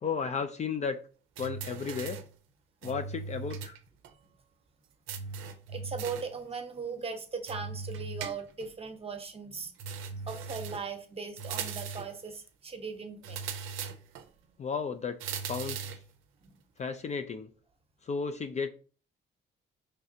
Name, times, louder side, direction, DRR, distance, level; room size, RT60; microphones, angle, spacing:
voice 1, 0.0-1.0 1.4-2.2 2.8-3.8 14.6-15.2 15.5-16.0 16.8-17.5 18.0-18.7, left 5 dB, 35° left, 0.4 m, -33 dB
sound 1, 1.4-2.3 2.8-3.8 4.0-4.1 5.1-6.3 7.5-8.7 9.8-10.9 11.4-12.2 13.2-14.3 15.2-16.1, right 5 dB, 90° right, 0.5 m, -39 dB
voice 2, 5.7-9.7 10.1-13.4 14.4-14.5 16.4-16.6, right 5 dB, 30° right, 0.8 m, -39 dB
4.8 x 3.3 x 2.7 m
cardioid pair, 90°, 20 cm